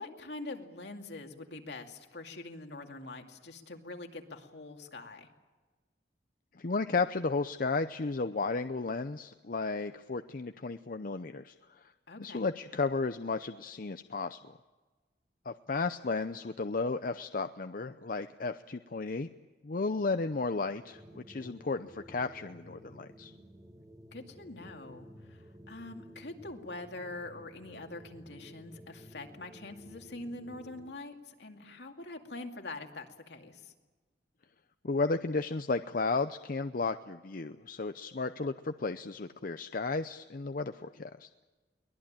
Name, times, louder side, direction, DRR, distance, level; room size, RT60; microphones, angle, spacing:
voice 1, 0.0-5.3 12.1-12.4 24.1-33.7, left 2 dB, 75° left, 4 dB, 2.4 m, -44 dB
voice 2, 6.5-11.5 12.2-14.6 15.5-19.3 19.6-23.3 34.8-41.3, left 3 dB, 50° left, 9 dB, 0.6 m, -33 dB
sound 1, 20.7-31.0, equal, 20° right, 1.5 m, -53 dB
23.0 x 20.0 x 8.9 m, 1.3 s
head